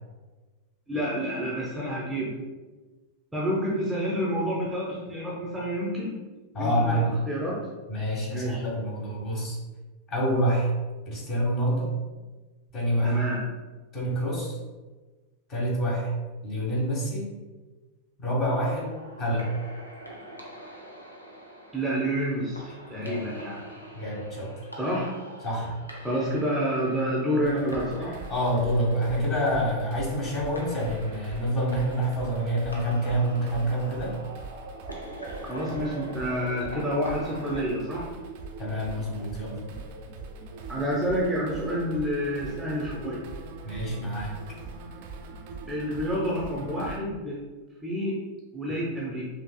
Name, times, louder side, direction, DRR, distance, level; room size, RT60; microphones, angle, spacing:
voice 1, 0.9-2.3 3.3-6.2 6.6-7.6 8.3-8.6 13.0-13.4 21.7-23.6 24.8-25.1 26.0-28.2 35.4-38.1 40.7-43.3 45.7-47.4 47.8-48.2 48.5-49.2, equal, 5° right, -5 dB, 0.8 m, -29 dB
voice 2, 6.5-7.1 7.9-9.6 10.1-10.7 11.1-11.9 12.7-13.2 13.9-14.6 15.5-16.1 16.4-17.3 18.2-18.9 19.2-19.5 22.9-23.3 23.9-24.5 25.4-25.7 28.3-34.1 38.6-39.6 43.6-44.3, equal, 35° left, -4 dB, 1.5 m, -27 dB
sound 1, 18.4-37.6, equal, 85° left, 0.6 m, -45 dB
sound 2, 27.4-47.0, right 3 dB, 50° right, 0.5 m, -42 dB
5.4 x 2.7 x 2.3 m, 1.3 s
figure-of-eight pair, 90°, 0 cm